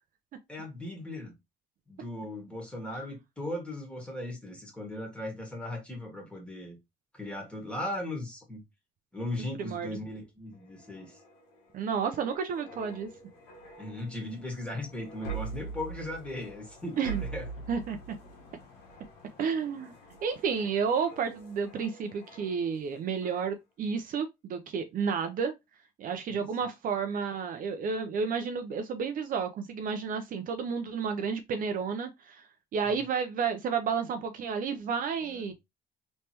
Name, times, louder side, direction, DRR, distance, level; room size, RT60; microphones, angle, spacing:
voice 1, 0.5-1.3 1.9-6.8 7.1-8.6 9.1-11.2 13.8-17.5 26.3-26.5 35.3-35.5, left 1 dB, 5° left, 1.7 m, -38 dB
sound 1, 10.5-22.9 23.2-23.5, right 4 dB, 90° left, 1.3 m, -44 dB
voice 2, 11.7-13.1 17.0-17.2 17.7-18.0 19.4-20.0 20.2-25.5 26.0-32.4 32.7-35.5, right 6 dB, 55° right, 0.6 m, -31 dB
3.3 x 3.2 x 2.9 m
cardioid pair, 110°, 17 cm